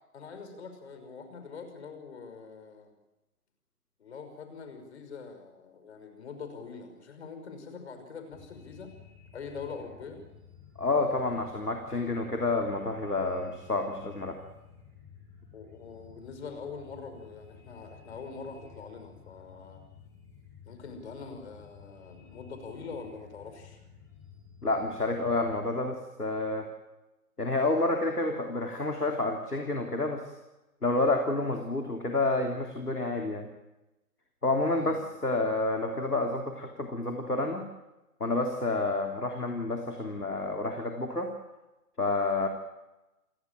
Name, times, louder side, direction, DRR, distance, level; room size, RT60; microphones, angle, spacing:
voice 1, 0.1-2.9 4.0-8.9 9.3-10.2 15.5-19.8 20.7-23.8 34.7-35.1, left 5 dB, 45° left, 7 dB, 5.9 m, -44 dB
sound 1, 8.3-25.7, left 7 dB, 5° left, 7.3 m, -53 dB
voice 2, 10.8-14.4 24.6-26.7 27.4-30.2 30.8-33.5 34.4-37.7 38.2-41.3 42.0-42.5, left 2 dB, 90° left, 3 dB, 3.3 m, -29 dB
29.5 x 17.0 x 9.1 m, 1.0 s
figure-of-eight pair, 140°, 45 cm